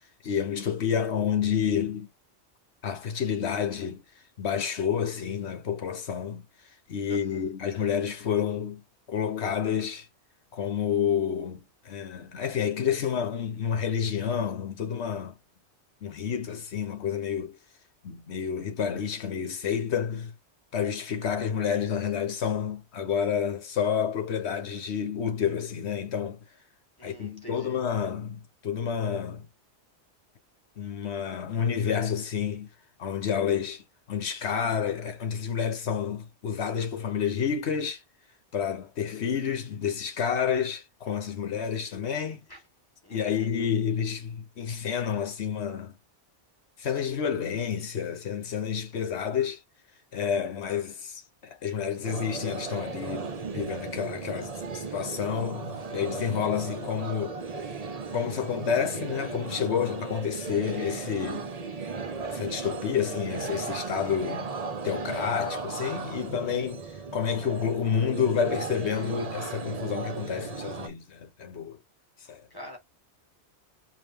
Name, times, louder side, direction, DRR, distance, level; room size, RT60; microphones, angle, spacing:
voice 1, 0.2-2.1 2.8-4.0 4.4-6.4 6.9-10.1 10.5-15.4 16.0-17.6 18.0-20.3 20.7-26.4 27.0-29.5 30.8-32.7 33.0-33.8 34.1-38.0 38.5-42.4 43.1-46.0 46.8-49.6 50.1-57.3 58.1-61.5 62.2-64.5 64.8-66.8 67.1-71.8 72.3-72.4, left 7 dB, 65° left, 1.3 m, -29 dB
voice 2, 27.0-27.8 42.5-42.6 43.0-43.4 72.5-72.8, equal, 20° left, 1.6 m, -45 dB
sound 1, 52.0-70.9, right 4 dB, 40° right, 0.7 m, -36 dB
5.0 x 2.7 x 3.6 m
omnidirectional pair, 1.2 m